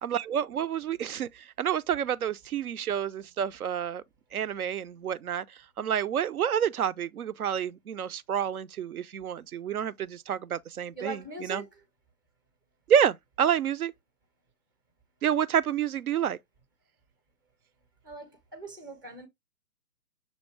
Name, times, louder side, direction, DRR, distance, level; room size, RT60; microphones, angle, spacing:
voice 1, 0.0-4.0 4.3-11.6 12.9-13.9 15.2-16.4, right 9 dB, 70° right, 0.5 m, -29 dB
voice 2, 10.9-11.7 18.0-19.3, right 2 dB, 15° right, 0.5 m, -40 dB
6.3 x 2.6 x 3.2 m
figure-of-eight pair, 125°, 45 cm